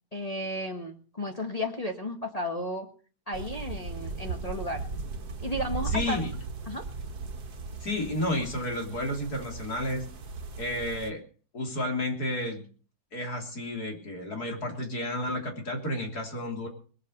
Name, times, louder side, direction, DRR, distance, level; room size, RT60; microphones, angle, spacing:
voice 1, 0.1-2.9 3.3-4.9 5.4-6.2 6.7-6.8, left 1 dB, 25° left, 2 dB, 1.6 m, -33 dB
sound 1, 3.3-11.1, right 4 dB, 70° right, 2.0 m, -37 dB
voice 2, 5.9-6.3 7.8-10.0 10.6-11.2 11.5-12.6 13.1-16.7, left 1 dB, 65° left, 2 dB, 3.9 m, -31 dB
20.5 x 8.2 x 6.6 m, 0.41 s
omnidirectional pair, 1.8 m